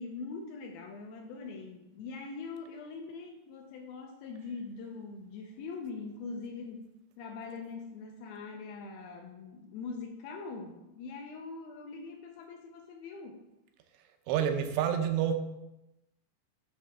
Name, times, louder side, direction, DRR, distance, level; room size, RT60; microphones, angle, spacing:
voice 1, 0.0-13.4, left 4 dB, 80° left, 3 dB, 2.3 m, -42 dB
voice 2, 14.3-15.3, right 9 dB, 90° right, 5 dB, 3.0 m, -28 dB
9.9 x 3.3 x 6.1 m, 0.94 s
omnidirectional pair, 4.8 m